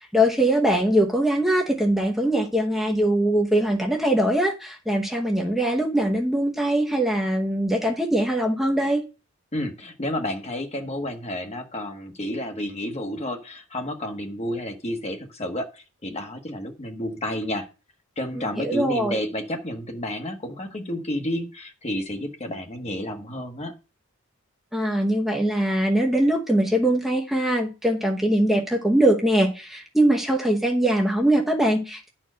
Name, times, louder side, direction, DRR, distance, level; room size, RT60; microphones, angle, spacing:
voice 1, 0.1-9.0 18.6-19.2 24.7-32.1, right 1 dB, ahead, 0 dB, 0.9 m, -22 dB
voice 2, 9.5-17.7 18.2-23.7, left 1 dB, 30° left, 5 dB, 1.3 m, -31 dB
10.5 x 4.4 x 6.2 m, 0.32 s
head